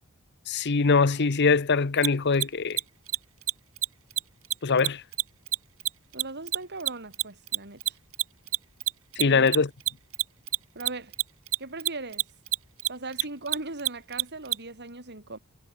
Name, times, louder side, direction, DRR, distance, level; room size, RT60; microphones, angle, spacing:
voice 1, 0.5-2.8 4.6-5.0 9.2-9.7, left 4 dB, 55° left, 0.8 m, -22 dB
Mechanisms, 2.0-2.1 2.3-2.5 2.7-2.8 3.1-3.2 3.4-3.5 3.8-3.9 4.1-4.2 4.5-7.2 7.5-14.6, right 16 dB, 70° right, 3.3 m, -26 dB
voice 2, 6.1-8.0 9.2-9.6 10.8-11.1 11.6-12.3 12.9-15.4, right 3 dB, 50° right, 5.4 m, -39 dB
head